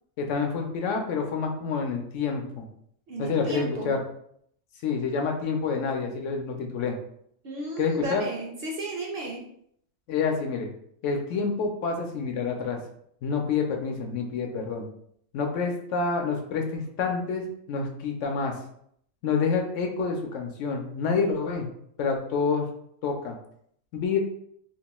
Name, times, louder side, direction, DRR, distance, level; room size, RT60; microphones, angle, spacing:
voice 1, 0.2-2.6 3.2-4.0 4.8-6.9 7.8-8.2 10.1-10.7 11.0-12.8 13.2-14.8 15.3-18.5 19.2-21.7 22.0-22.7 23.0-23.3 23.9-24.2, left 5 dB, 75° left, 3 dB, 0.9 m, -28 dB
voice 2, 3.1-4.0 7.4-9.4, right 1 dB, 60° right, -1 dB, 0.6 m, -33 dB
2.9 x 2.2 x 2.9 m, 0.68 s
omnidirectional pair, 1.3 m